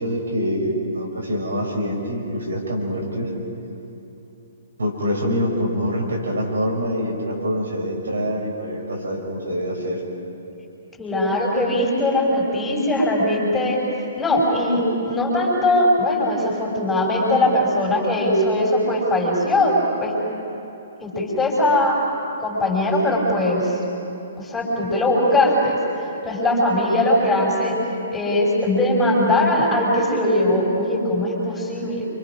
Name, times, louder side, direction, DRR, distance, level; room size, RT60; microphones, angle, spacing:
voice 1, 0.0-3.3 4.8-10.0, equal, 70° right, -1 dB, 6.1 m, -25 dB
voice 2, 11.0-13.8 14.2-14.8 15.1-20.1 21.0-22.0 22.4-23.8 24.4-27.8 28.1-32.1, left 1 dB, 10° left, -2 dB, 5.7 m, -20 dB
29.0 x 25.0 x 6.2 m, 3.0 s
figure-of-eight pair, 120°, 0 cm